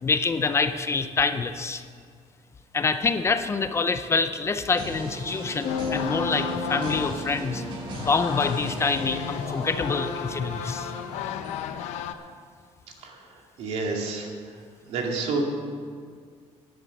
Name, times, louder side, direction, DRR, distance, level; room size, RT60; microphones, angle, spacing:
voice 1, 0.0-1.8 2.7-7.6 8.0-10.9, left 4 dB, 25° left, 10 dB, 0.5 m, -26 dB
sound 1, 4.8-11.7, right 1 dB, 45° right, 2.6 m, -38 dB
sound 2, 5.6-8.2, left 2 dB, 65° left, 1.6 m, -34 dB
sound 3, 5.7-12.1, left 9 dB, 90° left, 0.8 m, -34 dB
voice 2, 13.6-14.3 14.9-15.4, right 3 dB, 70° right, 1 dB, 2.4 m, -28 dB
11.0 x 10.5 x 6.6 m, 2.1 s
cardioid pair, 145°, 11 cm